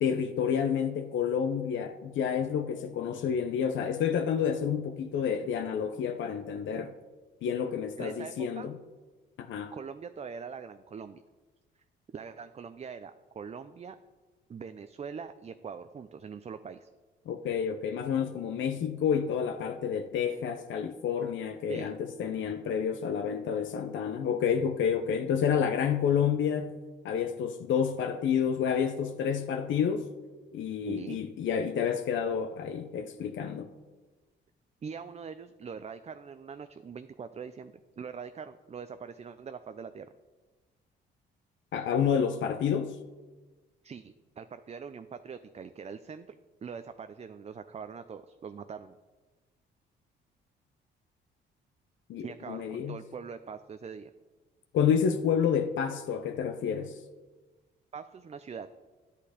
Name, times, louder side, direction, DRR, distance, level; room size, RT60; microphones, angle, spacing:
voice 1, 0.0-6.9 7.4-8.8 9.4-9.7 17.3-26.7 27.0-30.1 30.5-33.7 41.7-43.0 52.1-53.0 54.7-57.0, left 7 dB, 75° left, 0.7 m, -29 dB
voice 2, 8.0-8.7 9.7-11.2 12.1-14.0 14.5-16.9 21.7-21.9 30.8-31.2 34.8-40.1 43.8-46.4 46.6-49.0 52.2-54.1 57.9-58.7, right 6 dB, 35° right, 0.5 m, -42 dB
10.5 x 8.4 x 5.0 m
cardioid pair, 90°, 20 cm